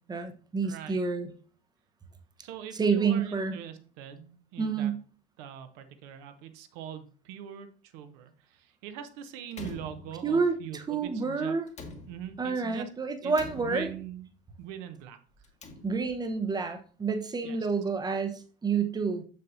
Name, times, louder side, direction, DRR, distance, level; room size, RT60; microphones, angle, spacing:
voice 1, 0.1-1.3 2.7-3.5 4.6-5.0 10.2-11.7 12.4-13.9 15.8-19.2, right 5 dB, 15° right, 7 dB, 0.8 m, -29 dB
voice 2, 0.6-1.0 2.4-4.9 5.4-11.6 12.1-12.9 13.2-14.3 14.6-15.2 17.4-17.6, right 9 dB, 50° right, 8 dB, 0.9 m, -42 dB
Slam, 9.5-10.6 11.7-12.6 13.3-14.2 15.3-16.3, left 3 dB, 25° left, 1.2 m, -46 dB
6.7 x 6.6 x 2.6 m, 0.40 s
figure-of-eight pair, 75°, 29 cm